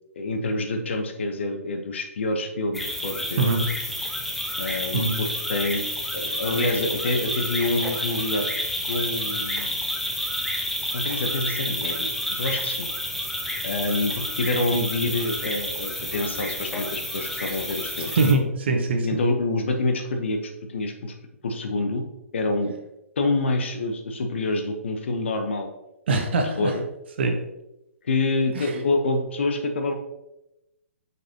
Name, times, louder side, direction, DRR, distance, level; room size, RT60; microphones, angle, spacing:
voice 1, 0.2-3.5 4.6-5.8 6.1-8.5 8.9-9.8 10.9-12.9 13.6-18.1 19.0-21.1 21.4-22.0 22.3-22.7 23.2-25.7 26.6-26.8 28.0-29.9, left 2 dB, 55° left, 5 dB, 1.0 m, -27 dB
sound 1, 2.7-18.3, left 1 dB, ahead, 0.7 m, -30 dB
voice 2, 18.1-19.2 26.1-26.7 27.2-27.3, right 3 dB, 50° right, 4 dB, 1.1 m, -22 dB
6.2 x 5.2 x 2.9 m, 0.92 s
figure-of-eight pair, 130°, 8 cm